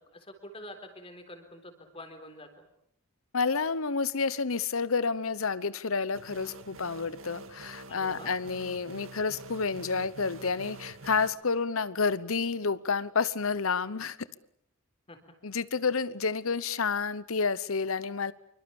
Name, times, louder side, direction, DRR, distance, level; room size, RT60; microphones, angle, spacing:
voice 1, 0.1-2.7 7.9-8.3 15.1-15.2, left 1 dB, 25° left, 6 dB, 4.1 m, -46 dB
voice 2, 3.3-14.2 15.4-18.3, left 5 dB, 80° left, 17 dB, 1.0 m, -30 dB
sound 1, 6.1-11.3, right 3 dB, 70° right, 2.2 m, -47 dB
26.5 x 24.5 x 7.2 m, 0.69 s
head